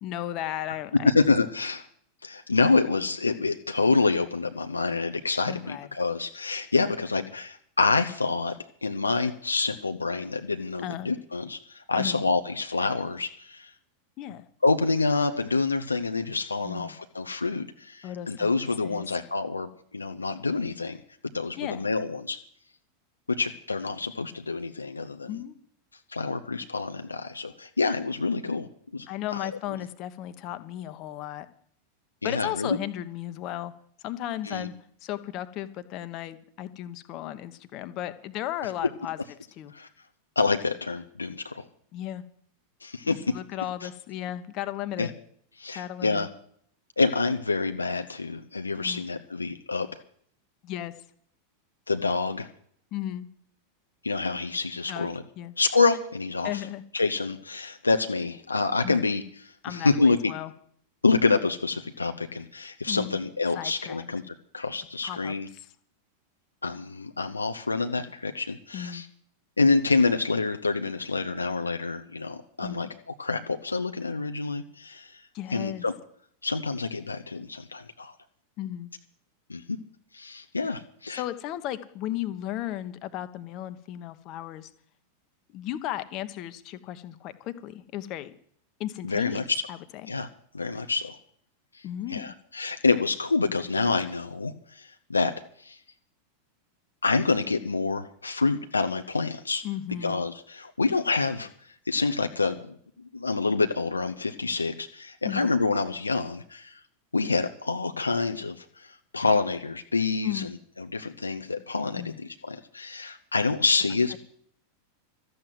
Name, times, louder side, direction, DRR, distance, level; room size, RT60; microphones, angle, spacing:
voice 1, 0.0-1.1 5.5-5.9 10.8-11.1 12.0-12.2 14.2-14.4 16.6-16.9 18.0-18.5 18.8-19.0 21.6-21.8 25.3-25.6 29.1-31.5 32.2-33.7 34.0-34.7 35.0-39.2 39.6-39.7 41.9-42.2 43.0-45.1 45.7-46.3 48.8-49.1 50.6-50.9 52.9-53.3 54.9-55.5 56.4-56.8 58.8-59.0 59.6-60.5 62.9-63.2 63.5-64.1 65.0-65.7 68.7-69.0 72.6-72.9 75.3-75.8 78.6-78.9 81.1-84.7 85.5-88.3 88.8-89.4 89.7-89.8 90.0-90.1 91.8-92.3 99.6-100.2 105.2-105.5 110.2-110.5 112.0-112.2, left 12 dB, 40° left, 11 dB, 1.1 m, -35 dB
voice 2, 1.0-1.8 2.2-8.5 8.8-13.7 14.6-21.0 21.3-22.4 23.4-25.3 26.1-28.7 28.9-29.1 29.3-29.5 32.2-32.8 34.4-34.7 39.7-39.9 40.4-41.7 42.8-43.2 43.8-43.9 45.0-45.1 45.6-46.3 47.0-50.0 51.9-52.5 54.0-55.2 55.6-56.7 56.9-60.3 61.0-65.5 66.6-69.1 69.6-72.9 73.2-75.2 75.5-75.9 76.4-78.1 79.5-79.8 80.1-81.2 89.0-89.6 90.1-90.3 90.5-91.2 91.7-91.8 92.1-95.3 95.6-95.8 97.0-99.6 100.0-101.5 101.9-102.8 103.1-106.8 107.1-114.2, left 3 dB, 80° left, 7 dB, 0.7 m, -27 dB
13.0 x 7.8 x 9.2 m, 0.62 s
figure-of-eight pair, 90°, 0 cm